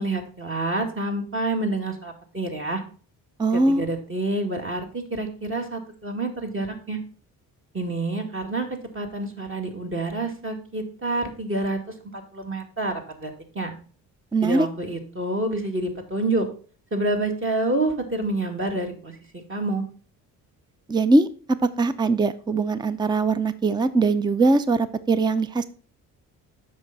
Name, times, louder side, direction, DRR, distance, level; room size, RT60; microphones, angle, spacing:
voice 1, 0.0-2.8 3.5-7.0 7.7-11.8 12.1-13.7 14.4-16.5 16.9-19.8, right 2 dB, 30° right, 3 dB, 2.1 m, -28 dB
voice 2, 3.4-3.9 14.3-14.7 20.9-25.7, right 3 dB, 10° right, 14 dB, 0.5 m, -21 dB
7.9 x 5.8 x 4.0 m, 0.40 s
supercardioid pair, 70°, 39 cm